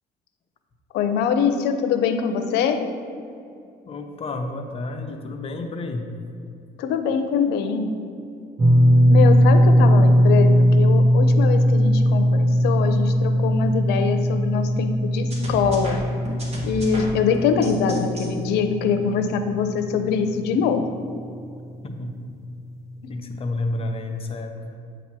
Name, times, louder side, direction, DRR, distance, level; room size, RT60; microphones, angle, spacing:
voice 1, 0.9-2.8 6.8-7.9 9.1-16.0 16.6-20.9, left 6 dB, 80° left, 7 dB, 0.6 m, -23 dB
voice 2, 3.8-6.0 21.8-22.1 23.1-24.5, left 2 dB, 35° left, 4 dB, 0.8 m, -30 dB
sound 1, 8.6-20.8 21.1-21.3 23.0-23.1, equal, 15° right, 0.7 m, -19 dB
sound 2, 15.3-18.3, right 1 dB, 40° right, 1.5 m, -34 dB
8.1 x 3.0 x 6.0 m, 2.5 s
cardioid pair, 110°, 17 cm